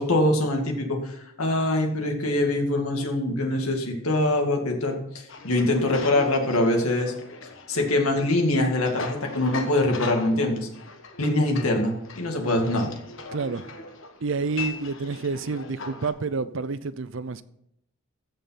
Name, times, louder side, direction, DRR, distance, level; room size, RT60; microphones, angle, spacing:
voice 1, 0.0-7.1 7.7-10.7 11.2-12.9, left 1 dB, 85° left, 2.2 m, -24 dB
sound 1, 5.3-16.1, left 4 dB, 65° left, 1.3 m, -40 dB
voice 2, 13.3-13.7 14.2-17.4, right 4 dB, 65° right, 0.5 m, -29 dB
14.5 x 5.5 x 5.8 m
head